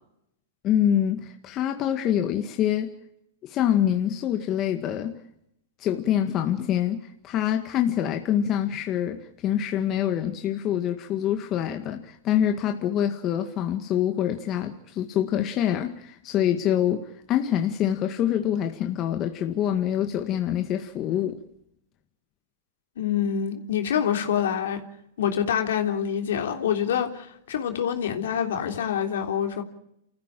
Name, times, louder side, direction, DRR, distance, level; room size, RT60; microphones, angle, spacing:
voice 1, 0.6-2.9 3.4-5.2 5.8-21.4, left 10 dB, 35° left, 1.9 m, -25 dB
voice 2, 23.0-24.8 25.2-29.6, left 8 dB, 75° left, 3.4 m, -26 dB
29.0 x 15.0 x 7.6 m
hypercardioid pair, 115°, 0 cm